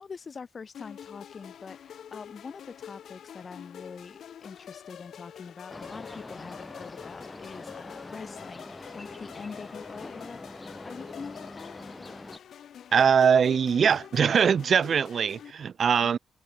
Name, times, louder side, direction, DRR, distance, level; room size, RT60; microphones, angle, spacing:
voice 1, 0.0-11.8 15.9-16.1, left 5 dB, 35° left, 0.8 m, -44 dB
sound 1, 0.7-15.5, left 9 dB, 65° left, 1.9 m, -46 dB
sound 2, 5.7-12.4, left 2 dB, 15° left, 1.5 m, -44 dB
voice 2, 12.9-16.2, right 7 dB, 50° right, 0.5 m, -22 dB
cardioid pair, 130°, 0 cm